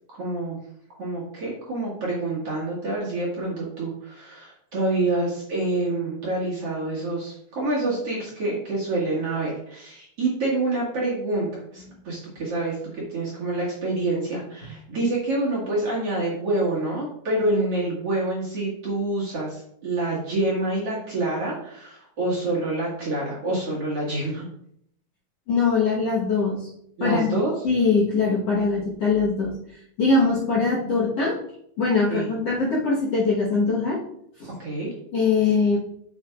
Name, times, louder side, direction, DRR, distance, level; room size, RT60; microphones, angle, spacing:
voice 1, 0.1-0.6 1.0-12.8 13.1-24.5 27.0-27.5 30.8-30.9 32.1-32.3 34.5-34.9, right 2 dB, 45° right, -6 dB, 2.3 m, -27 dB
voice 2, 25.5-26.7 27.0-27.4 27.6-31.4 31.8-34.0 34.4-34.5 35.1-35.8, left 4 dB, 60° left, -5 dB, 1.7 m, -22 dB
7.8 x 7.1 x 2.4 m, 0.70 s
omnidirectional pair, 4.5 m